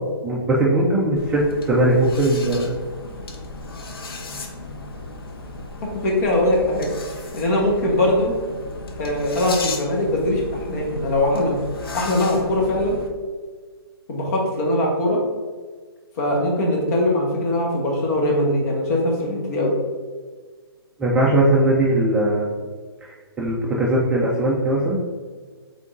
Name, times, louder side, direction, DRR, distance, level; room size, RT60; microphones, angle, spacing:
voice 1, 0.2-2.7 21.0-22.5 23.0-25.0, right 1 dB, 5° right, -5 dB, 0.3 m, -19 dB
sound 1, 1.2-13.1, left 2 dB, 65° left, 0.8 m, -35 dB
voice 2, 6.0-6.9 7.3-8.3 9.0-10.4 10.7-11.6 11.9-13.0 14.1-15.2 16.2-19.7, left 1 dB, 40° left, -2 dB, 1.3 m, -21 dB
3.7 x 3.6 x 3.7 m, 1.5 s
hypercardioid pair, 155°, 13 cm